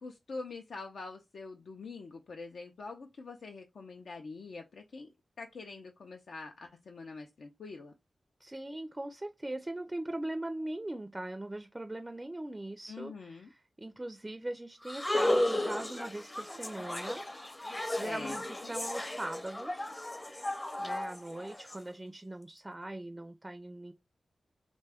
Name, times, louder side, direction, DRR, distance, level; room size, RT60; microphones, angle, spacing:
voice 1, 0.0-5.1 5.4-7.9 12.9-13.5 18.0-18.4, left 3 dB, 80° left, 0.4 m, -45 dB
voice 2, 8.4-17.3 17.6-19.9 20.8-23.9, right 1 dB, 20° right, 0.4 m, -40 dB
sound 1, 14.8-21.8, left 1 dB, 25° left, 0.6 m, -34 dB
2.5 x 2.2 x 3.4 m
cardioid pair, 50°, 0 cm